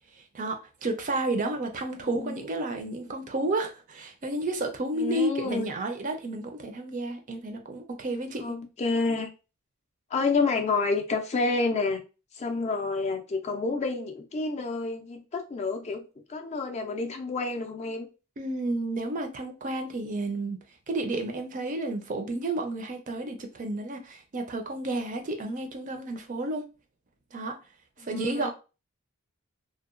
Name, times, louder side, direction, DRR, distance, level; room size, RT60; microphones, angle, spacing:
voice 1, 0.3-8.6 18.4-20.6 20.9-26.7 27.3-27.6 28.0-28.5, right 2 dB, 35° right, 0.4 m, -31 dB
voice 2, 2.0-2.4 4.9-5.7 8.4-9.3 10.1-12.0 12.3-16.0 16.3-18.1 28.0-28.5, left 3 dB, 30° left, 0.3 m, -29 dB
2.8 x 2.1 x 2.4 m
head